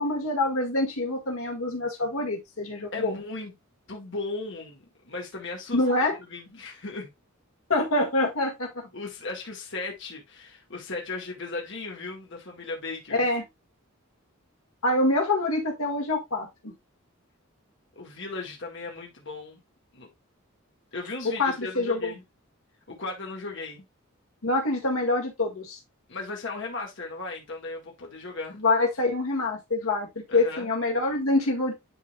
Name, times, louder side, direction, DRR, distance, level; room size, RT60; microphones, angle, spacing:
voice 1, 0.0-3.2 5.7-6.2 7.7-8.8 13.1-13.4 14.8-16.7 21.4-22.1 24.4-25.8 28.6-30.1 30.3-31.7, left 2 dB, 85° left, 1.9 m, -25 dB
voice 2, 2.9-3.5 3.9-5.8 6.3-7.1 8.9-13.3 18.0-19.6 19.9-20.1 20.9-22.2 22.9-23.8 26.1-28.6 30.3-30.7, left 3 dB, 60° left, 1.9 m, -36 dB
11.0 x 4.0 x 2.3 m
head